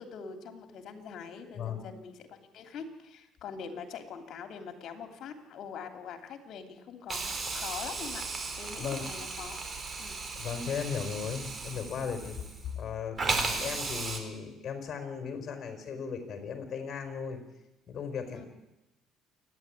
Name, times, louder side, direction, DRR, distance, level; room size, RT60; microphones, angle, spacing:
voice 1, 0.0-8.2 8.6-9.6 10.0-10.2 12.2-12.4 18.3-18.4, left 6 dB, 60° left, 7 dB, 3.0 m, -43 dB
voice 2, 1.5-1.9 8.8-9.1 10.3-12.4 12.7-17.4 17.9-18.5, left 6 dB, 45° left, 7 dB, 4.9 m, -36 dB
Hiss, 7.1-12.8 13.2-14.2, right 3 dB, 30° right, 4.0 m, -35 dB
27.5 x 10.5 x 9.9 m, 0.98 s
cardioid pair, 100°, 0 cm